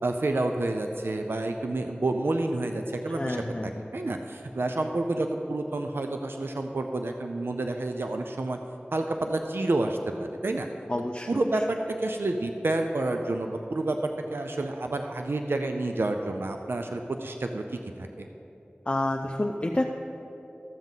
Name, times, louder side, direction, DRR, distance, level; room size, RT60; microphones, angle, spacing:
voice 1, 0.0-8.6 8.9-10.7 11.3-18.3, right 2 dB, 85° right, 4 dB, 0.4 m, -29 dB
voice 2, 3.2-3.7 10.9-11.3 18.9-19.8, left 1 dB, 30° left, 2 dB, 0.5 m, -28 dB
13.5 x 7.3 x 3.9 m, 3.0 s
wide cardioid pair, 40°, 4 cm